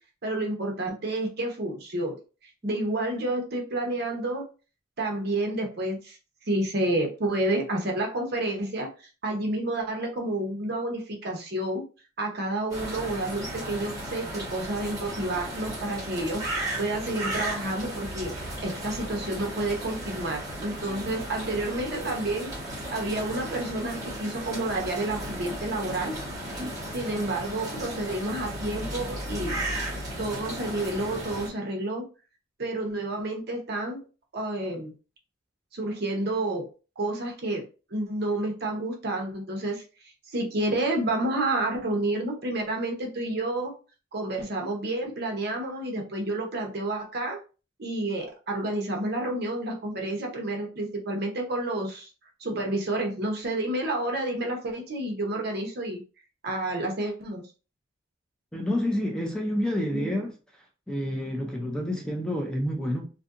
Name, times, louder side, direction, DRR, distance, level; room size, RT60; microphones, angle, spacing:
voice 1, 0.2-2.2 2.6-4.4 5.0-6.2 6.5-8.9 9.2-11.8 12.2-16.4 16.8-18.3 18.6-22.5 22.9-26.1 26.9-29.5 30.2-32.0 32.6-34.0 34.3-34.9 35.7-36.7 37.0-37.6 37.9-39.8 40.3-43.7 44.1-47.4 47.8-52.1 52.4-56.0 56.4-57.5 59.9-60.1, right 1 dB, 55° right, 0.7 m, -29 dB
sound 1, 12.7-31.5, right 1 dB, 20° right, 1.0 m, -35 dB
voice 2, 58.5-60.3 60.9-63.1, left 1 dB, 5° left, 0.3 m, -29 dB
2.6 x 2.5 x 2.4 m
head